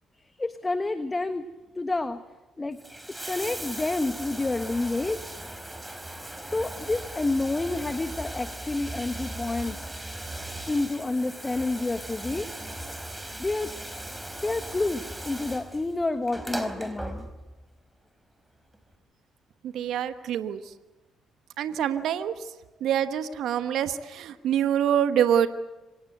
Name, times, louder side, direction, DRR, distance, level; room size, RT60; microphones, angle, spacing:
voice 1, 0.4-1.4 1.7-2.2 2.6-2.8 3.3-5.4 6.4-9.8 10.7-12.5 13.4-13.7 14.4-17.3, left 2 dB, 25° left, 10 dB, 1.4 m, -29 dB
Bathtub (filling or washing), 2.6-17.6 18.7-18.8, right 1 dB, 10° right, 4.3 m, -38 dB
voice 2, 19.6-20.7 21.6-22.3 22.8-25.5, right 9 dB, 70° right, 10 dB, 1.2 m, -25 dB
25.5 x 19.0 x 7.9 m, 1.1 s
hypercardioid pair, 50°, 0 cm